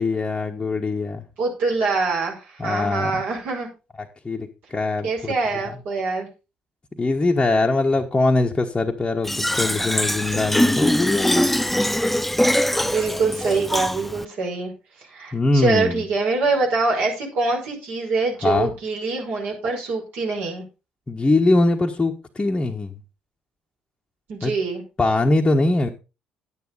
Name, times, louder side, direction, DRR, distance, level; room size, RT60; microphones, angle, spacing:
voice 1, 0.0-1.2 2.6-3.2 4.2-5.3 7.0-11.5 15.3-16.0 18.4-18.7 21.1-23.0 24.4-24.5 25.0-25.9, left 2 dB, 20° left, -1 dB, 1.3 m, -22 dB
voice 2, 1.4-3.7 5.0-6.3 12.8-14.7 15.1-20.6 24.3-24.8, right 3 dB, 55° right, -1 dB, 5.4 m, -24 dB
Fill (with liquid), 9.2-14.2, left 1 dB, 5° left, 0.5 m, -22 dB
10.5 x 9.5 x 4.0 m, 0.30 s
figure-of-eight pair, 50°, 4 cm